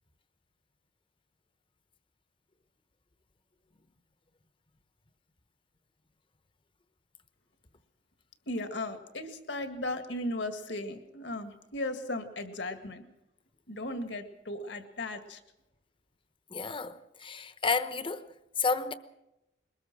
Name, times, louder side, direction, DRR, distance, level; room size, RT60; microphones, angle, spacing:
voice 1, 8.5-13.0 13.7-15.4, left 1 dB, 70° left, 2.1 m, -36 dB
voice 2, 16.5-18.3 18.6-18.9, left 4 dB, 30° left, 1.0 m, -31 dB
22.5 x 20.0 x 6.2 m
head